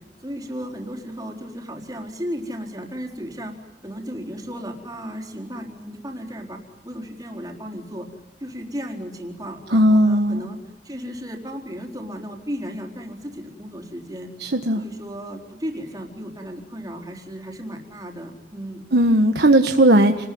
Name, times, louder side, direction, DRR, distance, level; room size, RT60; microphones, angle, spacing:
voice 1, 0.2-3.5 3.8-8.1 8.4-10.6 10.8-14.3 14.7-18.8, equal, 20° right, 2 dB, 4.3 m, -34 dB
voice 2, 9.7-10.4 14.4-14.8 18.9-20.3, right 1 dB, 65° right, 5 dB, 1.4 m, -17 dB
29.5 x 20.5 x 9.5 m, 0.93 s
head